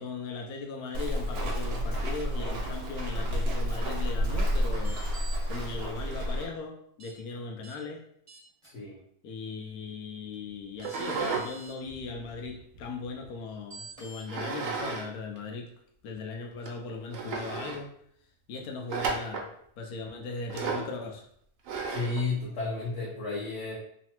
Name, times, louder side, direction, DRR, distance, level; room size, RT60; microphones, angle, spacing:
voice 1, 0.0-5.0 5.5-8.0 9.2-15.7 16.0-17.9 18.5-19.5 19.8-21.3, left 4 dB, 90° left, 2 dB, 1.1 m, -38 dB
Walk footsteps, 0.9-6.4, equal, 90° right, 1.1 m, -30 dB
sound 1, 4.8-5.4 7.0-7.1 7.6-7.8 8.3-8.7 10.3-10.4 10.8-11.7 13.7-14.2, right 2 dB, 30° right, 0.5 m, -47 dB
voice 2, 8.6-9.0 21.9-23.7, left 3 dB, 60° left, -6 dB, 0.9 m, -32 dB
sound 2, 10.8-11.5 11.9-13.3 14.3-15.1 15.4-15.5 16.1-16.2 16.7-16.8 17.1-17.8 18.9-19.5 20.5-20.9 21.7-22.2, right 5 dB, 70° right, 0.9 m, -34 dB
3.2 x 2.0 x 2.9 m, 0.68 s
omnidirectional pair, 1.6 m